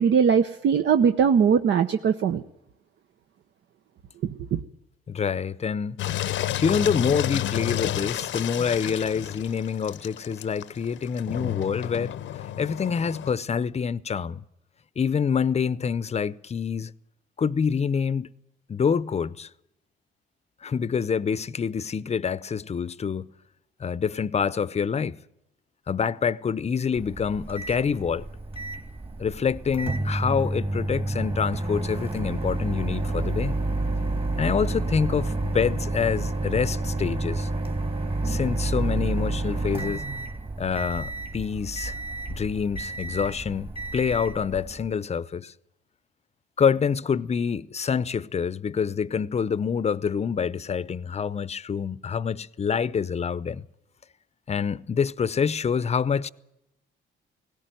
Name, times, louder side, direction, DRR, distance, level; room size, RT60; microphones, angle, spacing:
voice 1, 0.0-2.4 4.2-4.6, right 7 dB, 65° right, 0.9 m, -21 dB
voice 2, 5.1-6.0 6.6-12.1 12.6-14.4 15.0-16.9 17.4-18.3 18.7-19.5 20.6-23.3 23.8-25.2 25.9-28.3 29.2-33.6 34.4-37.5 38.2-40.0 40.6-41.9 42.3-45.5 46.6-53.6 54.5-56.3, left 6 dB, 35° left, 0.7 m, -26 dB
Engine, 6.0-13.3, left 13 dB, 75° left, 0.8 m, -31 dB
Microwave oven, 27.0-44.9, right 2 dB, 30° right, 2.3 m, -29 dB
18.0 x 16.5 x 9.2 m
cardioid pair, 90°, 20 cm